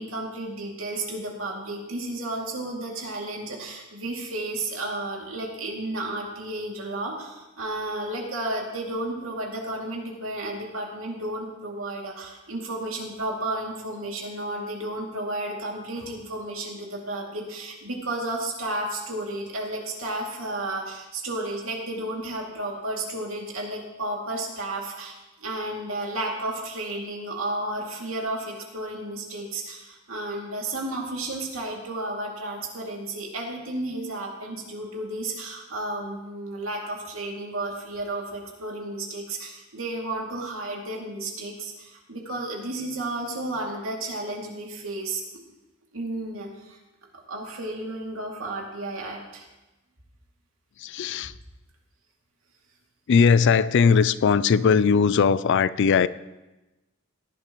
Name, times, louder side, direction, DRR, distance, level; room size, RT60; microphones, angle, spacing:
voice 1, 0.0-25.1 25.4-45.2 45.9-46.8 47.1-49.5, right 2 dB, 85° right, -1 dB, 2.5 m, -32 dB
voice 2, 50.8-51.3 53.1-56.1, left 6 dB, 60° left, 17 dB, 0.4 m, -19 dB
17.5 x 11.0 x 3.1 m, 1.0 s
head